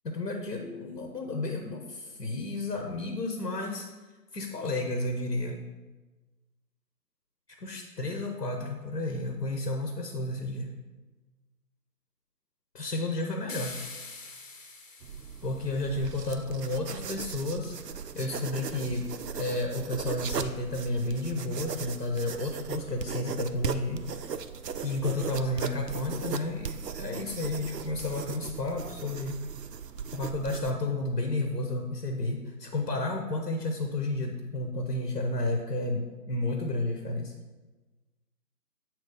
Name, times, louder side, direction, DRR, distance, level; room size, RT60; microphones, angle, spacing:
voice 1, 0.0-3.9 4.3-5.6 7.6-10.7 12.7-13.8 15.4-17.8 18.1-19.1 19.3-24.3 24.8-29.5 30.1-37.3, left 2 dB, 85° left, 3 dB, 1.1 m, -32 dB
sound 1, 13.5-15.9, left 3 dB, 50° left, 0.8 m, -44 dB
sound 2, 15.0-30.7, right 6 dB, 75° right, 0.6 m, -38 dB
8.2 x 3.2 x 5.0 m, 1.2 s
figure-of-eight pair, 170°, 48 cm